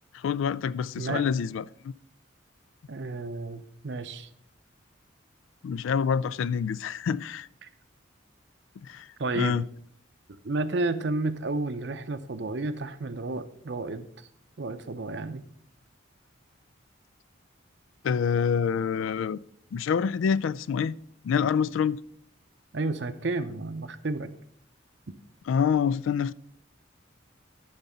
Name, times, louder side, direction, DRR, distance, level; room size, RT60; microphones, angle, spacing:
voice 1, 0.1-1.9 5.6-7.5 8.8-9.1 9.3-9.6 18.0-19.4 19.7-20.9 21.2-22.0 25.5-26.3, left 7 dB, 80° left, 0.3 m, -26 dB
voice 2, 2.9-4.3 7.6-7.7 9.2-9.6 10.4-14.1 14.6-15.4 22.7-24.3, right 2 dB, 60° right, 0.6 m, -31 dB
11.0 x 4.0 x 5.6 m
head